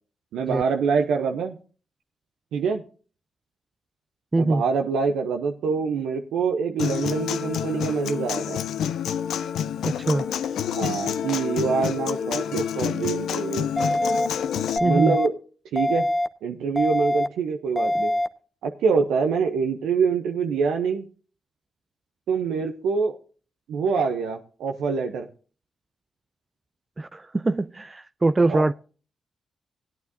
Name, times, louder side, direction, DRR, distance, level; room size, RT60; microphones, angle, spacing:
voice 1, 0.3-1.6 2.5-2.8 4.4-8.6 10.7-13.7 14.8-15.3 15.7-16.1 16.4-18.1 18.6-21.1 22.3-23.2 23.7-25.3 28.5-28.6, right 5 dB, 85° right, 0.7 m, -25 dB
voice 2, 4.3-4.6 9.8-10.3 14.8-15.2 27.0-28.7, right 2 dB, 30° right, 0.4 m, -23 dB
Human voice / Acoustic guitar, 6.8-14.8, left 8 dB, 80° left, 0.5 m, -28 dB
sound 1, 13.8-14.3 14.8-15.3 15.8-16.3 16.8-17.3 17.8-18.3, left 1 dB, 10° left, 0.9 m, -23 dB
17.0 x 9.2 x 2.7 m
supercardioid pair, 50°, 0 cm